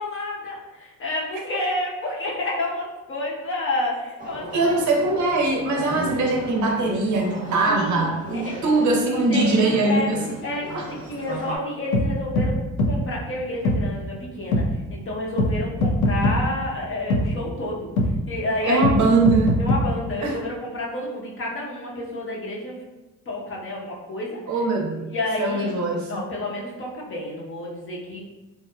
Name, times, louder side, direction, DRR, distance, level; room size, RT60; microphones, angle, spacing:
voice 1, 0.0-4.7 7.7-8.0 8.3-8.5 9.3-10.1 10.4-12.6 12.8-14.6 14.9-17.9 18.3-18.8 19.6-22.8 23.3-24.4 25.1-25.7 26.1-28.2, left 1 dB, 35° left, -3 dB, 0.8 m, -29 dB
sound 1, 4.2-11.6, right 1 dB, 20° right, 0.8 m, -36 dB
voice 2, 4.5-10.4 10.7-10.8 18.6-19.5 20.2-20.4 21.8-22.1 24.5-26.2, right 2 dB, 50° right, 0 dB, 0.7 m, -22 dB
sound 2, 11.9-12.1 12.4-12.5 12.8-12.9 13.6-13.8 14.5-14.6 15.4-15.5 15.8-16.4 17.1-17.2 18.0-18.1 18.8-19.0 19.3-19.8, left 1 dB, 75° left, 0.5 m, -20 dB
2.9 x 2.3 x 2.2 m, 1.1 s
hypercardioid pair, 65°, 37 cm